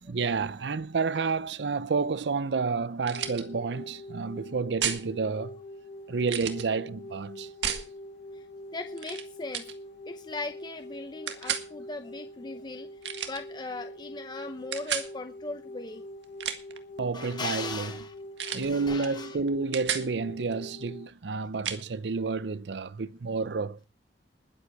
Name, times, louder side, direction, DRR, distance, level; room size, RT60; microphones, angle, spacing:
voice 1, 0.0-5.5 6.1-7.5 17.0-17.9 18.5-23.9, right 4 dB, 70° right, 0.6 m, -30 dB
sound 1, 3.0-3.4 4.8-5.0 6.3-6.7 7.6-7.9 9.0-9.2 9.5-9.7 11.3-11.7 13.0-13.4 14.7-15.1 16.2-16.8 18.4-18.7 19.0-19.2 19.5-20.1 21.6-21.8, right 8 dB, 90° right, 1.8 m, -32 dB
sound 2, 3.1-21.1, left 1 dB, 80° left, 5.9 m, -44 dB
voice 2, 8.7-9.6 10.0-12.9 13.3-16.0 17.1-18.1 18.4-19.4, left 3 dB, 25° left, 0.8 m, -38 dB
21.0 x 8.0 x 4.7 m
head